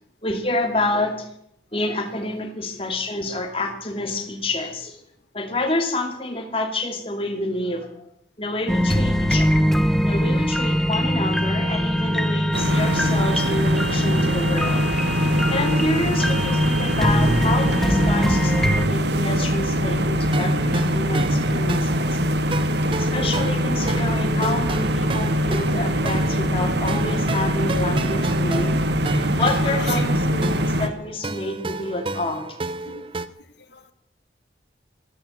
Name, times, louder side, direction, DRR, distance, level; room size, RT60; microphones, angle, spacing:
voice 1, 0.2-1.3 1.7-5.0 5.3-7.9 8.4-9.5 10.0-14.8 15.5-22.2 23.0-28.8 29.4-32.5, left 2 dB, 30° left, 5 dB, 2.4 m, -28 dB
sound 1, 8.7-18.9, equal, ahead, 0.8 m, -22 dB
sound 2, 12.5-30.9, equal, 70° right, 1.3 m, -23 dB
voice 2, 19.2-19.6 22.6-22.9 29.2-30.1 32.3-32.4 32.8-33.9, left 6 dB, 75° left, 10 dB, 1.6 m, -39 dB
sound 3, 20.3-33.3, right 2 dB, 30° right, 0.6 m, -30 dB
13.0 x 12.5 x 7.7 m, 0.69 s
head